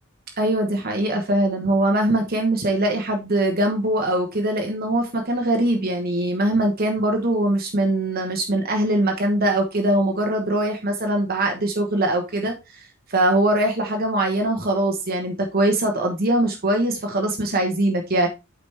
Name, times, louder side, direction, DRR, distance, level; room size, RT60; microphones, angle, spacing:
voice 1, 0.4-18.3, right 1 dB, 50° right, 1.1 m, -22 dB
8.6 x 5.0 x 3.4 m
head